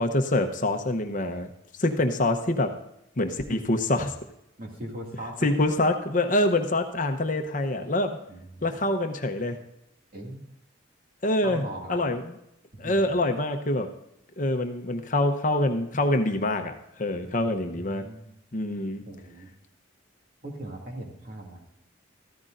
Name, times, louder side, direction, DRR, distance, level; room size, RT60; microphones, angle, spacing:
voice 1, 0.0-1.5 1.8-2.7 3.2-4.1 5.4-8.2 8.6-9.6 11.2-11.6 11.9-12.3 12.8-13.9 14.4-18.0 18.5-19.0, left 1 dB, 40° left, 6 dB, 0.9 m, -25 dB
voice 2, 4.6-5.5 8.3-8.6 10.1-10.5 11.4-12.0 12.8-13.1 17.2-18.3 19.1-19.5 20.4-21.6, right 1 dB, 45° right, 0 dB, 2.4 m, -40 dB
14.5 x 14.0 x 2.6 m, 0.82 s
head